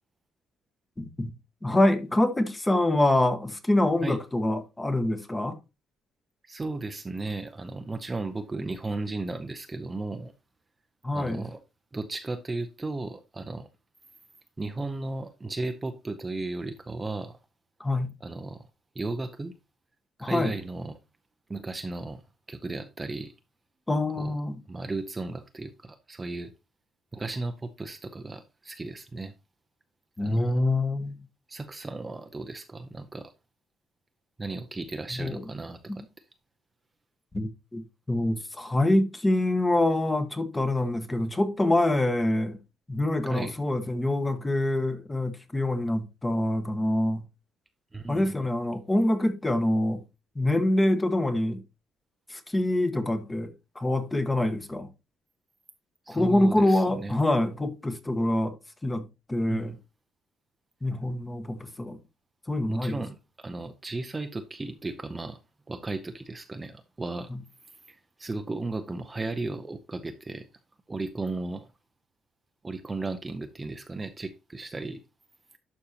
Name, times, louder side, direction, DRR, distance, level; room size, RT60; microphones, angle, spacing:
voice 1, 1.0-1.3 1.6-5.5 11.0-11.4 17.8-18.1 20.2-20.5 23.9-24.6 30.2-31.2 35.2-35.4 37.3-37.8 38.1-42.6 42.9-47.2 48.1-50.0 50.3-51.6 52.3-54.9 56.1-58.5 58.8-59.8 60.8-62.0 62.5-63.0, left 1 dB, 15° left, 1.2 m, -25 dB
voice 2, 6.4-10.3 11.1-11.6 11.9-13.7 14.6-17.4 18.2-18.7 18.9-19.5 20.2-20.9 21.5-22.2 22.5-23.3 24.2-24.3 24.7-26.5 27.1-29.3 30.2-30.6 31.5-33.3 34.4-36.0 43.3-43.5 47.9-48.4 56.1-57.2 59.5-59.8 62.7-65.4 65.7-67.3 67.9-70.5 70.9-71.7 72.6-75.0, right 2 dB, 15° right, 0.7 m, -35 dB
11.5 x 5.4 x 2.8 m
cardioid pair, 140°, 0 cm